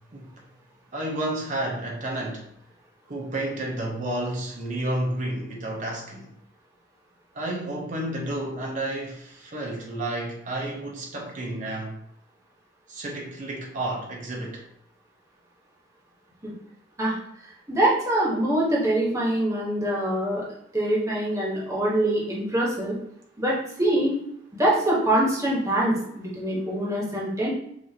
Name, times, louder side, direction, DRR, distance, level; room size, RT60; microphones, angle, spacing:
voice 1, 0.1-0.4 0.9-2.5 3.1-6.3 7.3-12.0 12.9-14.7, right 1 dB, 45° right, 0.8 m, -31 dB
voice 2, 17.7-20.4 20.7-23.0 23.4-24.2 24.5-27.5, right 1 dB, 15° right, 1.2 m, -24 dB
5.8 x 2.7 x 2.8 m
head